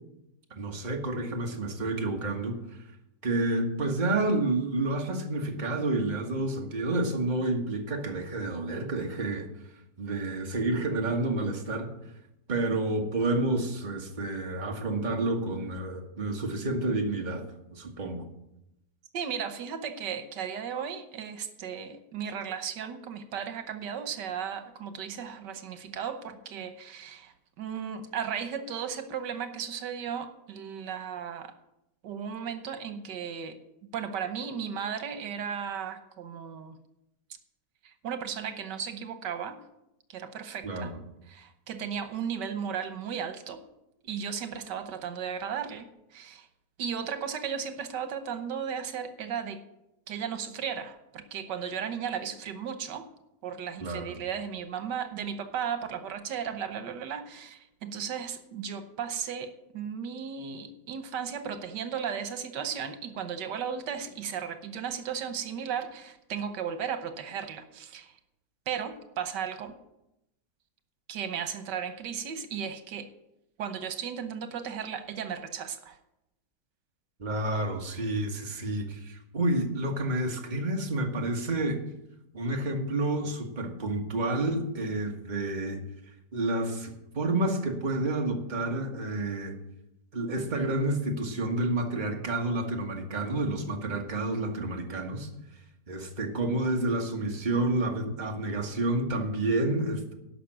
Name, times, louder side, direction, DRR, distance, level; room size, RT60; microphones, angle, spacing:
voice 1, 0.5-2.6 3.2-9.5 10.0-11.9 12.5-17.4 17.7-18.2 40.6-40.9 53.8-54.1 77.2-81.8 82.3-85.8 86.3-89.6 90.1-95.3 95.9-100.1, right 2 dB, 30° right, 2 dB, 1.5 m, -29 dB
voice 2, 19.1-31.5 32.0-33.6 33.9-36.8 37.8-39.6 40.1-40.9 41.3-43.6 44.0-46.5 46.8-49.6 50.1-53.0 53.4-68.2 68.7-69.7 71.1-73.1 73.6-76.0, right 7 dB, 85° right, 9 dB, 1.6 m, -35 dB
11.5 x 6.1 x 8.7 m, 0.85 s
omnidirectional pair, 1.8 m